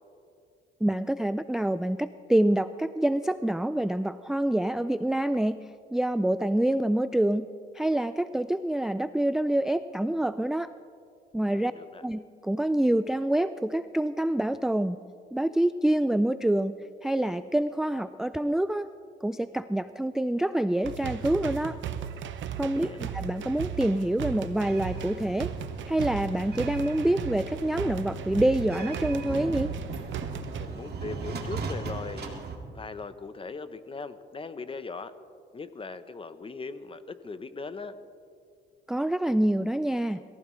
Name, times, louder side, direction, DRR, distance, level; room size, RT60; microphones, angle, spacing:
voice 1, 0.8-7.5 7.7-10.7 11.3-11.7 12.0-15.0 15.3-16.8 17.0-18.9 19.2-21.8 22.6-25.5 25.9-29.7 38.9-40.2, right 1 dB, ahead, 12 dB, 0.3 m, -26 dB
voice 2, 11.5-12.0 22.6-23.1 30.5-32.4 32.7-35.1 35.5-38.0, left 4 dB, 25° left, 12 dB, 0.8 m, -39 dB
sound 1, 20.8-30.7, right 8 dB, 70° right, 0.8 m, -36 dB
sound 2, 24.6-32.6, right 4 dB, 55° right, 2.1 m, -38 dB
22.0 x 15.0 x 3.2 m, 2.3 s
cardioid pair, 90°, 20 cm